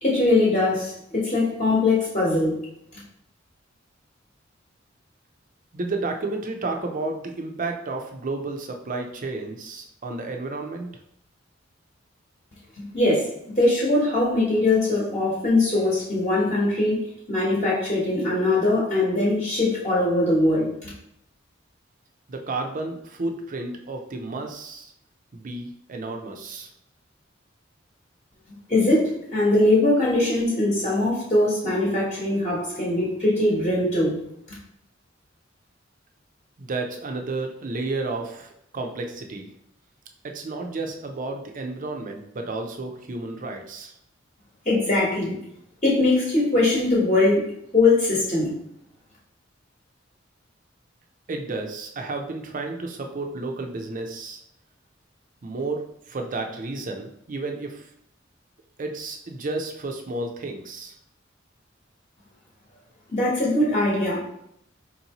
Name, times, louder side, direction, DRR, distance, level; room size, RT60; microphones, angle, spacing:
voice 1, 0.0-2.6 12.8-13.3 13.6-20.9 28.7-34.2 34.5-34.6 44.6-45.4 45.8-47.5 47.7-48.5 63.1-64.2, left 2 dB, 35° left, -6 dB, 1.0 m, -21 dB
voice 2, 5.7-10.9 22.3-24.9 25.3-26.7 36.6-39.5 40.2-43.9 51.3-54.4 55.4-57.9 58.8-60.9, right 3 dB, 45° right, 3 dB, 0.5 m, -32 dB
4.4 x 2.7 x 2.9 m, 0.75 s
head